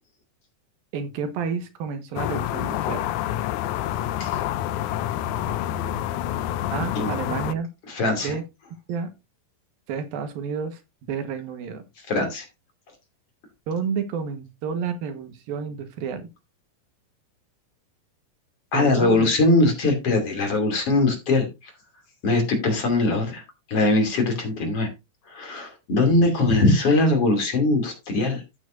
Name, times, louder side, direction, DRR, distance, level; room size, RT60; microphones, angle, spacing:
voice 1, 0.9-3.1 6.7-7.7 8.2-8.4 8.9-9.1 9.9-10.8 11.1-11.8 13.7-16.3 18.7-19.3, right 6 dB, 90° right, 9 dB, 3.1 m, -30 dB
sound 1, 2.2-7.5, left 12 dB, 85° left, 1.7 m, -27 dB
voice 2, 7.9-8.4 12.1-12.4 18.7-21.7 22.2-23.4 23.7-24.9 25.3-28.4, left 2 dB, 45° left, 4 dB, 3.4 m, -21 dB
12.5 x 8.9 x 2.6 m, 0.24 s
omnidirectional pair, 4.1 m